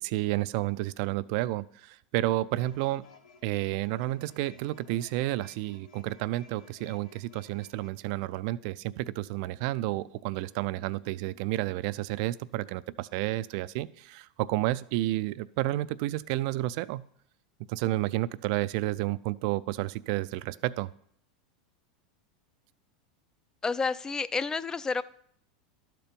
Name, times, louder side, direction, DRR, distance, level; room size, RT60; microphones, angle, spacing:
voice 1, 0.0-3.1 3.4-17.0 17.7-20.9, right 16 dB, 60° right, 17 dB, 0.4 m, -31 dB
sound 1, 2.6-7.9, left 5 dB, 80° left, 1.0 m, -57 dB
voice 2, 23.6-25.0, left 4 dB, 15° left, 17 dB, 0.3 m, -30 dB
12.0 x 4.5 x 5.2 m, 0.67 s
supercardioid pair, 115°, 4 cm